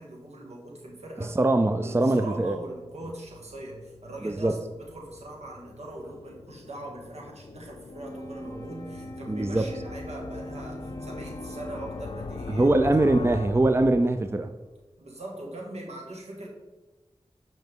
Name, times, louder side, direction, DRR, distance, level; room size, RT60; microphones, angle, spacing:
voice 1, 0.0-1.4 1.8-12.7 13.2-13.3 15.0-16.5, right 1 dB, 80° right, -1 dB, 1.7 m, -41 dB
voice 2, 1.4-2.6 4.2-4.5 9.3-9.7 12.5-14.5, right 2 dB, 25° right, 8 dB, 0.4 m, -22 dB
sound 1, 2.0-14.5, left 4 dB, 60° left, 0.5 m, -42 dB
Wind instrument woodwind instrument, 7.8-12.6, right 1 dB, 30° left, 0.9 m, -42 dB
8.0 x 5.2 x 3.6 m, 1.1 s
wide cardioid pair, 50°, 11 cm